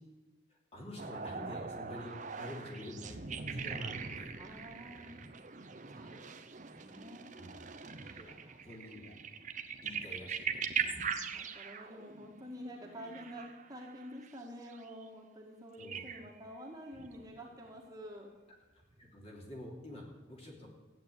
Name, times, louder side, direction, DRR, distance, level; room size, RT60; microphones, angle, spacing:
voice 1, 0.5-4.3 6.1-6.2 7.4-7.6 8.1-9.1 9.8-11.0 15.8-16.1 19.0-20.7, left 1 dB, 30° left, -1 dB, 3.1 m, -48 dB
sound 1, 1.0-14.3 14.7-15.1 15.8-16.4 16.9-17.7 19.0-19.1, right 6 dB, 40° right, 0.8 m, -41 dB
voice 2, 4.4-7.2 8.0-8.6 10.8-18.3, equal, 20° right, -1 dB, 1.9 m, -49 dB
14.5 x 9.2 x 8.4 m, 1.2 s
head